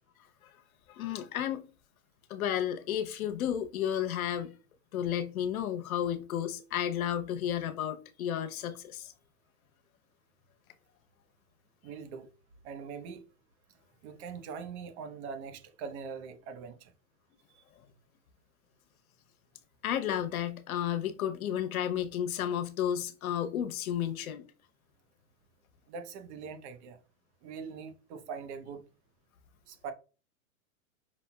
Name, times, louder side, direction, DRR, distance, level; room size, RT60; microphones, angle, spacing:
voice 1, 0.9-1.6 2.3-4.5 4.9-9.1 19.8-24.4, left 10 dB, 75° left, 0.9 m, -32 dB
voice 2, 11.8-12.3 12.6-13.2 14.0-16.9 17.5-17.6 25.9-27.0 27.4-28.8 29.7-29.9, right 5 dB, 50° right, 1.0 m, -42 dB
5.5 x 4.2 x 2.3 m
hypercardioid pair, 120°, 43 cm